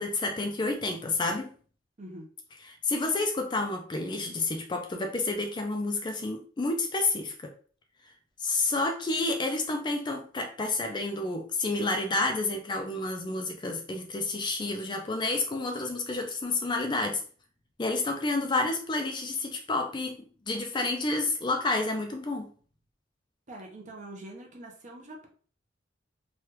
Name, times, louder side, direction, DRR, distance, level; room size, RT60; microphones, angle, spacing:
voice 1, 0.0-1.5 2.8-7.5 8.4-17.2 17.8-20.2 20.5-22.5, left 2 dB, 25° left, 4 dB, 0.4 m, -29 dB
voice 2, 2.0-2.3 23.5-25.3, right 1 dB, 40° right, 1 dB, 0.7 m, -44 dB
3.2 x 2.3 x 2.8 m, 0.42 s
head